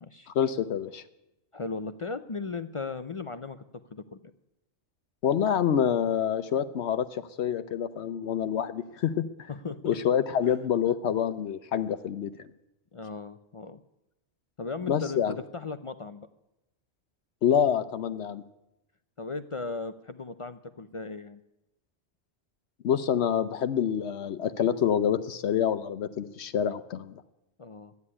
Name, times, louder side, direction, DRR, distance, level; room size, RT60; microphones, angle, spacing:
voice 1, 0.3-1.0 5.2-9.5 9.8-12.3 14.9-15.4 17.4-18.4 22.8-27.1, left 8 dB, 75° left, 11 dB, 0.9 m, -27 dB
voice 2, 1.5-3.6 3.9-4.2 9.5-10.0 10.5-10.6 12.9-13.8 14.6-15.2 15.5-16.3 19.2-21.4 27.6-27.9, left 4 dB, 45° left, 11 dB, 0.4 m, -37 dB
13.0 x 9.5 x 9.8 m, 0.91 s
omnidirectional pair, 1.2 m